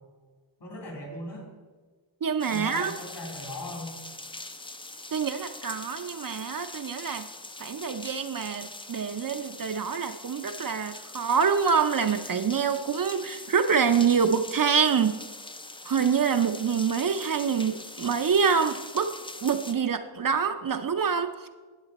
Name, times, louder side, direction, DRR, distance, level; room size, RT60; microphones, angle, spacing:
voice 1, 0.6-1.5 2.5-4.0, left 1 dB, 60° left, -1 dB, 3.7 m, -38 dB
voice 2, 2.2-2.9 5.1-7.2 7.6-15.2 15.8-19.1 19.4-21.5, right 6 dB, 45° right, 7 dB, 0.6 m, -26 dB
sound 1, 2.4-19.7, left 2 dB, 10° left, 0.5 m, -43 dB
12.0 x 8.0 x 4.1 m, 1.4 s
wide cardioid pair, 80°, 48 cm